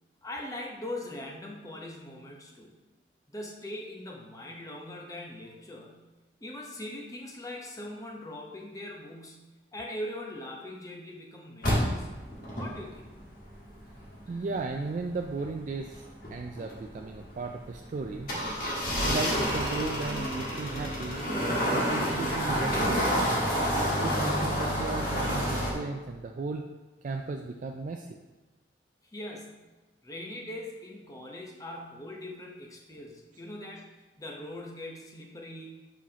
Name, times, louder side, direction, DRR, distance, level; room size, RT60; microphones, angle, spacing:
voice 1, 0.2-2.8 3.3-6.1 6.4-12.1 12.6-13.1 29.0-29.6 30.0-33.9 34.2-35.9, left 1 dB, 20° left, 0 dB, 0.8 m, -41 dB
sound 1, 11.6-25.7, equal, 50° left, 1.5 m, -30 dB
voice 2, 14.3-18.3 19.1-21.2 21.7-23.4 24.0-26.7 27.0-28.2, right 3 dB, 45° right, 3 dB, 0.3 m, -35 dB
7.2 x 5.7 x 2.9 m, 1.2 s
head